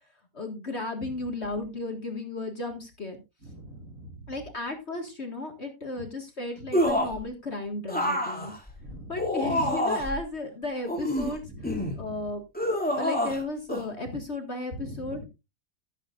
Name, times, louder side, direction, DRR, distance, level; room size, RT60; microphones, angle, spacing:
voice 1, 0.3-3.2 4.3-8.5 9.1-11.4 12.0-12.4 13.0-15.3, left 2 dB, 40° left, 4 dB, 1.9 m, -34 dB
voice 2, 3.4-4.3 8.8-9.1 11.5-12.2 14.7-15.3, right 1 dB, 45° right, 3 dB, 2.8 m, -42 dB
sound 1, 6.7-7.2 7.9-10.2 10.9-12.0 12.5-13.4 13.7-13.8, equal, 5° left, 2.3 m, -27 dB
15.0 x 8.2 x 2.5 m, 0.25 s
omnidirectional pair, 2.0 m